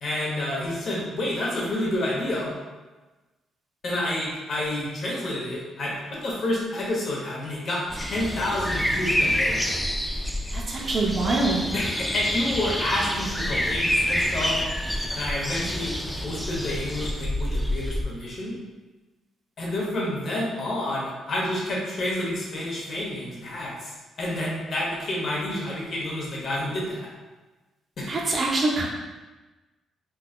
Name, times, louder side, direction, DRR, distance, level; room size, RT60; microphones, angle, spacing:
voice 1, 0.0-2.5 3.8-9.6 11.7-14.6 15.1-18.5 19.6-27.1 28.0-28.1, left 1 dB, 55° left, -4 dB, 1.1 m, -29 dB
sound 1, 7.9-18.0, equal, 5° left, 0.3 m, -27 dB
voice 2, 10.5-11.6 28.1-28.9, right 2 dB, 45° right, -2 dB, 0.7 m, -24 dB
3.8 x 2.7 x 2.4 m, 1.2 s
cardioid pair, 90°, 0 cm